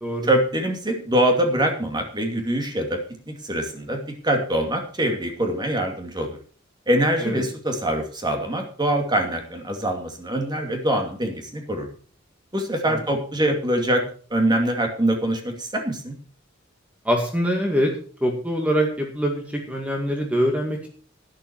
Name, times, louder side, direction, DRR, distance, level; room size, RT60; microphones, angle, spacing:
voice 1, 0.2-3.0 3.3-6.3 6.9-11.9 12.5-14.0 14.3-16.1, right 1 dB, 20° right, 3 dB, 2.6 m, -24 dB
voice 2, 17.1-17.9 18.2-20.9, equal, 5° right, 2 dB, 1.9 m, -24 dB
11.5 x 10.5 x 4.7 m, 0.42 s
head